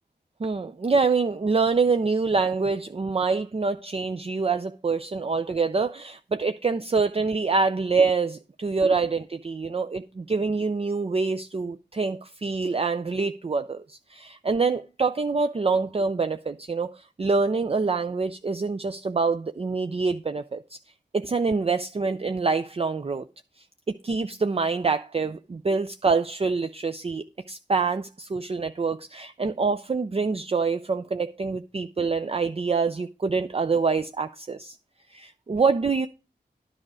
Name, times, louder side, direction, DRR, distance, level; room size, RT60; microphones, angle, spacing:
voice 1, 0.4-20.8 21.1-23.3 23.9-34.8 35.1-36.1, right 4 dB, 35° right, 0.5 m, -26 dB
9.8 x 4.9 x 6.3 m
cardioid pair, 45°, 18 cm